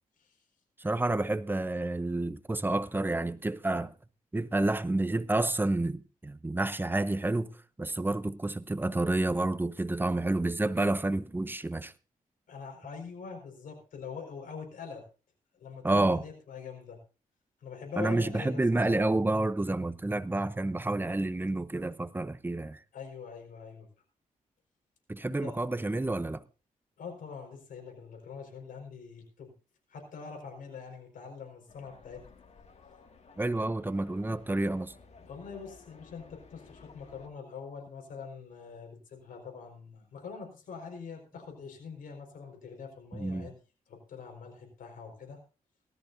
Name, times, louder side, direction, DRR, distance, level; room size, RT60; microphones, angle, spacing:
voice 1, 0.8-3.9 4.3-11.9 15.8-16.2 18.0-22.8 25.1-26.4 33.4-34.9 43.1-43.5, right 2 dB, 15° right, 0.7 m, -29 dB
voice 2, 12.5-15.0 15.5-17.0 17.6-18.6 18.9-19.1 22.9-23.9 25.4-25.6 27.0-29.5 29.9-32.2 35.2-43.5 43.9-45.4, left 6 dB, 85° left, 4.9 m, -44 dB
sound 1, 31.7-37.3, left 4 dB, 50° left, 2.1 m, -55 dB
18.0 x 13.5 x 2.7 m
cardioid pair, 90°, 14 cm